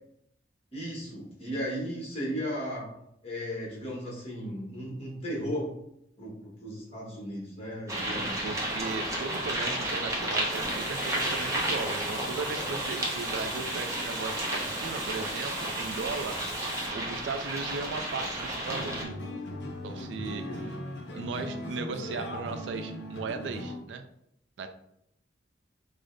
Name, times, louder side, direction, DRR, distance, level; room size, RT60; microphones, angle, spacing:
voice 1, 0.7-2.9 3.2-5.7 6.2-8.4 20.4-20.7, equal, 35° left, -4 dB, 1.1 m, -35 dB
sound 1, 7.9-19.1, right 1 dB, 15° right, 0.6 m, -32 dB
voice 2, 8.2-19.0 19.8-20.8 21.1-24.0 24.6-24.7, right 4 dB, 75° right, 8 dB, 0.3 m, -37 dB
Water, 10.5-16.9, right 3 dB, 90° right, 0.9 m, -44 dB
sound 2, 18.7-23.8, left 1 dB, 70° left, 0.6 m, -38 dB
4.8 x 2.0 x 2.6 m, 0.77 s
head